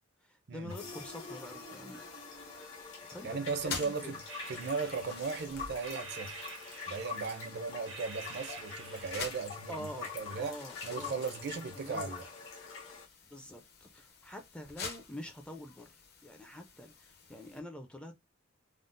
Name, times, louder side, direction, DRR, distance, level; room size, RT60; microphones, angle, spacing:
voice 1, 0.2-2.1 3.1-4.1 9.7-10.1 10.4-11.3 11.7-12.1 13.3-15.9 16.2-18.1, left 1 dB, 5° left, 0.4 m, -46 dB
sound 1, 0.7-13.1, left 5 dB, 75° left, 1.2 m, -45 dB
sound 2, 0.7-17.6, left 5 dB, 55° left, 0.7 m, -49 dB
voice 2, 3.2-6.5 6.9-9.9 10.2-10.6 10.8-12.2, right 4 dB, 55° right, 0.5 m, -37 dB
sound 3, 4.3-5.4 5.8-7.5 7.9-9.5, right 4 dB, 85° right, 1.1 m, -48 dB
3.6 x 2.0 x 2.4 m
head